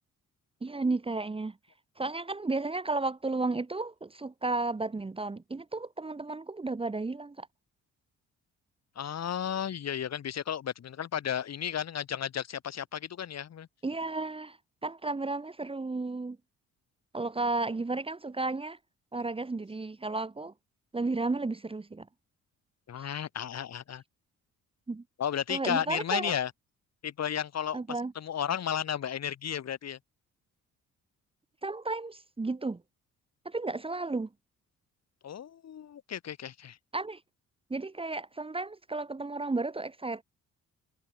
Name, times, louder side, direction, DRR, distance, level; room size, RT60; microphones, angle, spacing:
voice 1, 0.6-1.6 2.0-7.5 13.8-14.6 14.8-16.4 17.1-18.8 19.1-20.5 20.9-22.1 23.0-23.1 24.9-25.0 25.5-26.3 27.7-28.1 31.6-32.8 33.4-34.3 36.9-37.2 37.7-40.2, right 3 dB, 20° right, 1.3 m, -33 dB
voice 2, 9.0-13.7 22.9-24.0 25.2-26.5 27.0-27.8 28.2-30.0 35.2-36.8, left 9 dB, 60° left, 3.9 m, -33 dB
cardioid pair, 90°, 30 cm